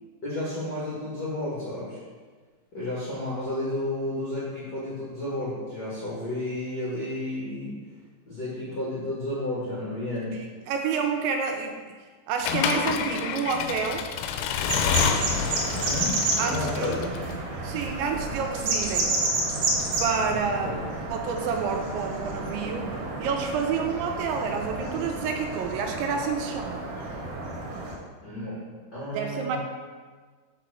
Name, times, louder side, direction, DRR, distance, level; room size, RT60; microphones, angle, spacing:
voice 1, 0.2-2.0 2.7-7.7 8.3-10.4 15.7-17.1 20.2-20.4 20.6-20.7 28.2-28.6 28.9-29.6, left 1 dB, 70° left, -8 dB, 0.9 m, -32 dB
voice 2, 10.3-11.8 12.3-14.1 16.4-17.0 17.6-19.3 20.0-22.9 23.2-26.9 29.1-29.6, right 5 dB, 80° right, 3 dB, 2.8 m, -29 dB
Accelerating revving vroom / Mechanisms, 12.4-17.3, left 7 dB, 85° left, 2.5 m, -28 dB
sound 1, 14.7-27.9, right 2 dB, 65° right, 2.3 m, -30 dB
6.1 x 5.8 x 6.3 m, 1.5 s
omnidirectional pair, 5.5 m